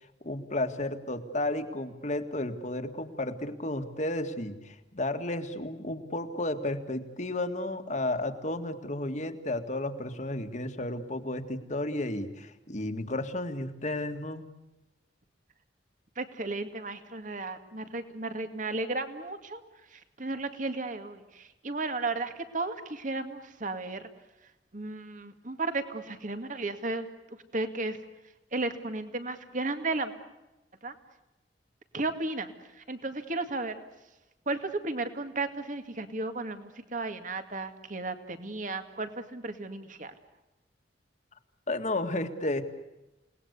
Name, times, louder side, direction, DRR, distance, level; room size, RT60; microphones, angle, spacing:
voice 1, 0.2-14.5 41.7-42.6, left 1 dB, 40° left, 7 dB, 2.0 m, -33 dB
voice 2, 16.2-19.6 19.9-24.1 24.7-27.1 27.5-28.0 28.5-30.1 30.8-30.9 31.9-33.8 34.5-40.2, right 2 dB, 45° right, 8 dB, 2.2 m, -34 dB
29.0 x 19.5 x 8.3 m, 1.0 s
head